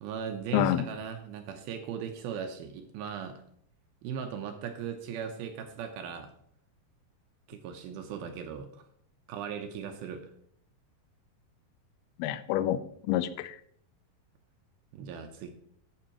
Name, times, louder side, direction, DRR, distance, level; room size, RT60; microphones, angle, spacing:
voice 1, 0.0-3.4 4.0-6.3 7.5-8.7 9.3-10.3 14.9-15.5, right 7 dB, 75° right, 6 dB, 2.4 m, -38 dB
voice 2, 0.5-0.9 12.2-13.6, left 12 dB, 85° left, 13 dB, 2.2 m, -28 dB
11.5 x 8.5 x 2.9 m, 0.67 s
omnidirectional pair, 5.0 m